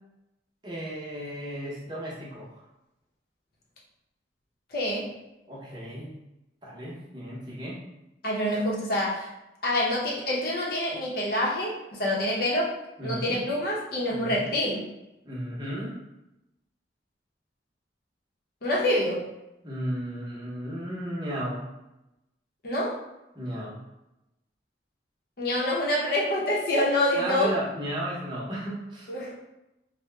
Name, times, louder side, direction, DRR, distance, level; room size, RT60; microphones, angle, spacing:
voice 1, 0.6-2.6 5.5-6.2 6.6-7.8 13.0-13.4 14.1-14.5 15.2-16.0 19.6-21.6 23.3-23.8 27.2-29.1, equal, 25° right, -6 dB, 0.8 m, -34 dB
voice 2, 4.7-5.1 8.2-9.3 9.6-12.7 13.0-14.8 18.6-19.2 22.6-23.0 25.4-27.5 29.1-29.3, left 1 dB, 55° left, -4 dB, 0.8 m, -26 dB
2.8 x 2.1 x 3.3 m, 0.92 s
head